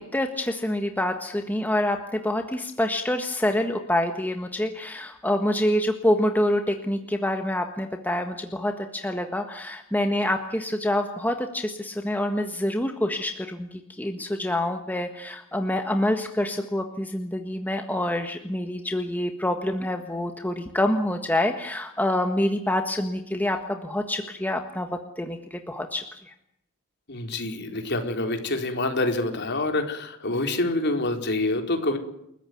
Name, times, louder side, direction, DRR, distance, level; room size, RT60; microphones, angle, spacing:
voice 1, 0.0-26.3, left 1 dB, 10° left, 5 dB, 1.5 m, -26 dB
voice 2, 27.1-32.0, left 2 dB, 50° left, 4 dB, 4.4 m, -26 dB
29.5 x 14.5 x 9.5 m, 0.77 s
head